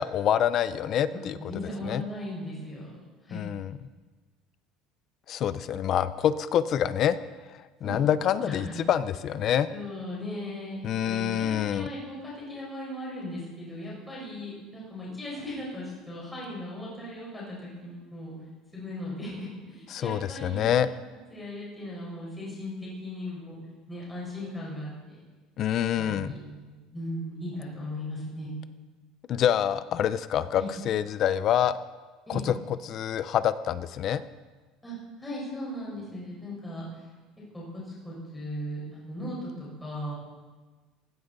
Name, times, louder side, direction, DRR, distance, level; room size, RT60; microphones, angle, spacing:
voice 1, 0.0-1.4 1.8-2.0 3.3-3.8 5.3-7.2 7.5-9.7 10.8-11.9 19.9-20.9 25.6-26.3 29.3-31.8 32.3-32.6 32.8-34.2, left 10 dB, 35° left, 14 dB, 0.5 m, -26 dB
voice 2, 1.1-3.0 3.2-3.4 7.8-8.0 8.4-8.8 9.7-18.3 18.7-20.7 21.3-23.6 23.9-25.2 26.0-28.5 30.6-30.7 32.3-32.4 34.8-37.0 37.5-40.1, left 1 dB, 5° left, -6 dB, 4.8 m, -38 dB
18.0 x 16.0 x 4.0 m, 1.3 s
cardioid pair, 175°, 0 cm